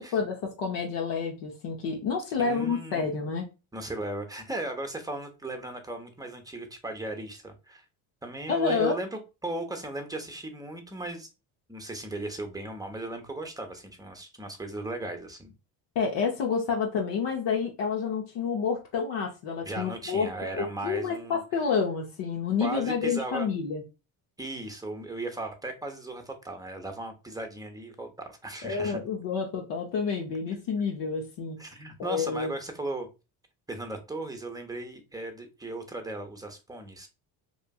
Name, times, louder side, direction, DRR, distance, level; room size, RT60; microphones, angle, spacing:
voice 1, 0.0-3.5 8.5-8.9 16.0-20.3 20.6-23.8 28.6-31.6 32.0-32.5, left 5 dB, 65° left, 0 dB, 0.8 m, -29 dB
voice 2, 2.4-3.1 3.7-7.8 8.2-11.3 11.7-15.5 19.6-21.4 22.6-23.5 24.4-29.0 31.6-33.1 33.7-37.1, right 2 dB, 10° right, 5 dB, 0.7 m, -36 dB
3.0 x 2.5 x 2.3 m, 0.29 s
supercardioid pair, 65°, 45 cm